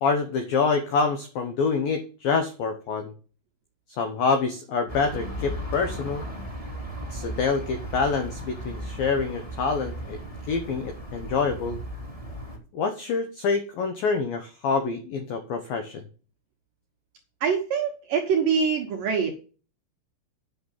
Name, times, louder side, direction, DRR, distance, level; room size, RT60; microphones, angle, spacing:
voice 1, 0.0-3.1 3.9-6.3 7.1-10.2 10.5-11.8 12.7-16.0, left 4 dB, 80° left, 7 dB, 2.0 m, -26 dB
sound 1, 4.9-12.6, right 1 dB, 15° left, 1.5 m, -36 dB
voice 2, 17.4-19.4, right 6 dB, 75° right, 2 dB, 2.0 m, -24 dB
9.4 x 6.4 x 7.3 m, 0.38 s
omnidirectional pair, 5.8 m